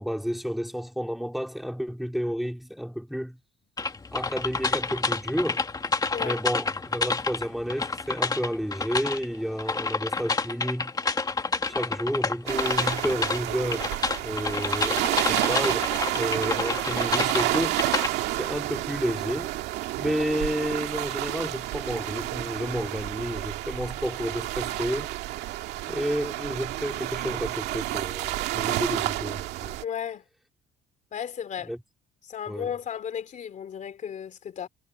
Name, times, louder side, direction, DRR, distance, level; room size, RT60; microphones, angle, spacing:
voice 1, 0.0-3.4 4.1-5.6 6.2-10.9 11.6-13.9 14.2-17.8 18.4-19.6 20.0-25.1 25.9-29.8 31.7-31.8 32.5-32.7, equal, ahead, 4.2 m, -31 dB
sound 1, 3.8-18.1, left 4 dB, 20° left, 2.2 m, -29 dB
sound 2, 12.5-29.8, right 16 dB, 90° right, 1.9 m, -30 dB
voice 2, 29.8-30.2 31.1-31.7 32.2-34.7, left 8 dB, 45° left, 3.3 m, -34 dB
cardioid pair, 110°, 17 cm